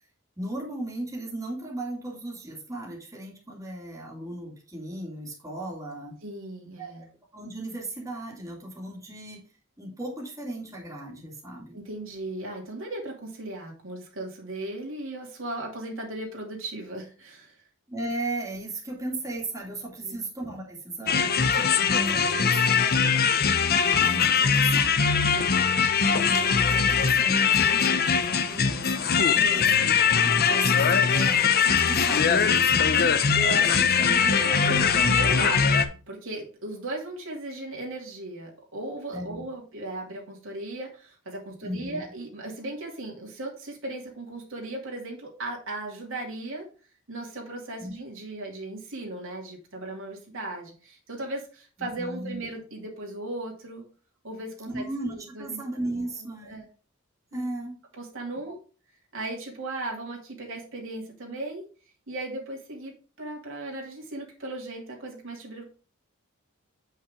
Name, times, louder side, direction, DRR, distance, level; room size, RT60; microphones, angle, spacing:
voice 1, 0.4-6.2 6.8-9.4 9.8-11.8 17.9-23.1 23.8-24.9 26.0-29.2 29.5-34.5 39.1-39.4 41.6-42.0 47.8-47.9 52.0-52.4 54.7-56.6 57.3-57.7 58.4-58.5, right 1 dB, 15° right, -3 dB, 2.5 m, -36 dB
voice 2, 6.2-7.0 11.7-17.6 20.0-20.2 25.3-25.8 29.4-29.7 33.3-46.7 47.1-53.9 54.2-54.8 55.1-55.6 56.4-56.7 57.3-57.4 58.0-58.6 59.1-61.6 62.1-65.6, right 2 dB, 65° right, -1 dB, 2.6 m, -36 dB
sound 1, 21.1-35.8, left 6 dB, 45° left, 0.7 m, -21 dB
8.4 x 5.7 x 3.6 m, 0.36 s
head